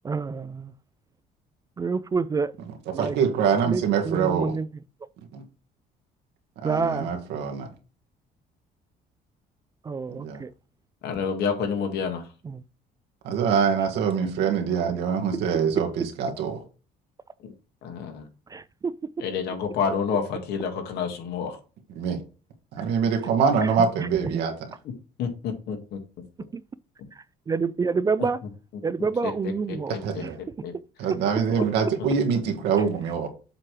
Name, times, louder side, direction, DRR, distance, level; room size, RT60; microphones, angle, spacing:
voice 1, 0.0-0.7 1.8-2.5 2.9-3.2 3.6-4.7 6.6-7.1 9.8-10.5 12.4-12.6 15.8-15.9 18.5-19.1 22.8-22.9 23.6-24.4 26.5-26.6 27.1-28.4 28.8-29.9 30.2-30.3 31.1-31.2, right 4 dB, 20° right, 0.3 m, -28 dB
voice 2, 3.0-4.6 5.3-5.4 6.6-7.7 10.1-10.4 13.2-16.6 21.9-22.2 22.7-24.5 29.9-30.4 31.0-33.3, right 6 dB, 85° right, 1.7 m, -24 dB
voice 3, 11.0-12.2 17.4-17.5 17.8-18.3 19.2-21.6 25.2-26.0 29.9-30.2 30.6-30.7 31.5-31.6 32.0-32.1, left 6 dB, 75° left, 1.9 m, -29 dB
7.5 x 3.2 x 5.9 m
cardioid pair, 110°, 17 cm